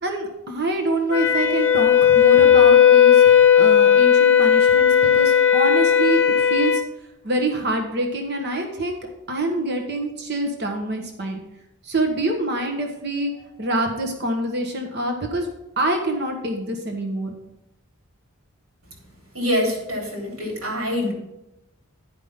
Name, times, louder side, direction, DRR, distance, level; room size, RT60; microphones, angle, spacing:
voice 1, 0.0-6.8 7.2-9.0 9.3-11.4 11.8-15.5 15.8-17.4, right 1 dB, 50° right, 3 dB, 1.1 m, -25 dB
Wind instrument woodwind instrument, 1.1-6.8, left 8 dB, 50° left, 1.1 m, -15 dB
voice 2, 19.3-21.1, left 1 dB, 70° right, -1 dB, 3.3 m, -25 dB
10.0 x 5.2 x 5.6 m, 0.90 s
head